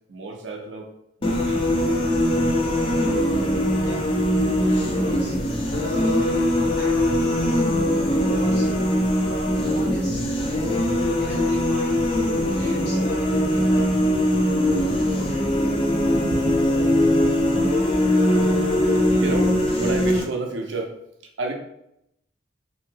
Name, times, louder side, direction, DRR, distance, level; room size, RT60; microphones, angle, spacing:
voice 1, 0.1-0.9 1.2-1.7 14.8-16.9 19.2-20.9 21.4-21.5, right 2 dB, 80° right, 2 dB, 0.5 m, -32 dB
sound 1, 1.2-20.2, left 1 dB, 30° left, 0.4 m, -21 dB
voice 2, 3.8-4.1 4.5-5.3 5.7-6.3 6.6-7.6 7.9-8.7 9.3-10.2 10.5-10.7 11.1-12.0 12.3-13.9, equal, 60° left, -4 dB, 1.1 m, -37 dB
2.7 x 2.6 x 2.8 m, 0.78 s
head